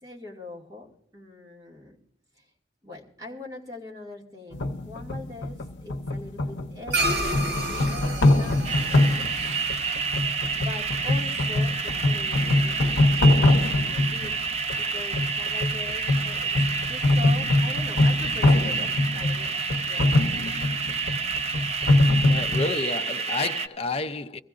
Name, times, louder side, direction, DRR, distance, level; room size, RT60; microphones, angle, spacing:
voice 1, 0.0-2.0 2.3-2.5 2.8-9.5 10.5-12.8 13.1-20.1, left 2 dB, 20° right, 2.1 m, -42 dB
sound 1, 4.5-22.7, left 1 dB, 90° left, 0.7 m, -24 dB
sound 2, 6.9-11.5, right 1 dB, 70° right, 1.5 m, -31 dB
sound 3, 8.6-23.7, right 5 dB, 40° right, 0.7 m, -29 dB
voice 2, 22.2-24.4, left 3 dB, 35° left, 0.5 m, -30 dB
22.5 x 15.5 x 2.5 m
head